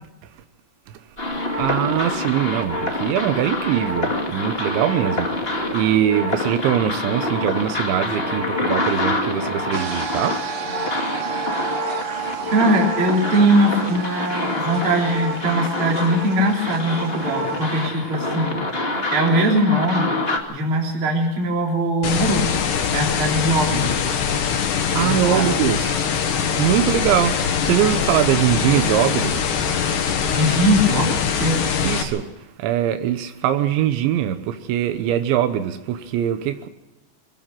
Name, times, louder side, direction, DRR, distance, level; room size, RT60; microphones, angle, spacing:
sound 1, 1.2-20.4, left 2 dB, 30° left, 1.0 m, -26 dB
voice 1, 1.3-10.4 22.9-23.0 24.6-26.0 26.3-29.4 31.8-32.3 32.6-36.7, right 10 dB, 85° right, 3.4 m, -22 dB
sound 2, 9.7-17.9, right 7 dB, 60° right, 3.8 m, -33 dB
voice 2, 12.5-18.6 19.1-20.2 20.5-22.5 22.9-24.0 25.0-25.5 30.3-31.9, right 1 dB, 30° right, 3.7 m, -21 dB
sound 3, 22.0-32.0, left 7 dB, 70° left, 3.9 m, -22 dB
23.0 x 16.0 x 7.8 m
omnidirectional pair, 5.2 m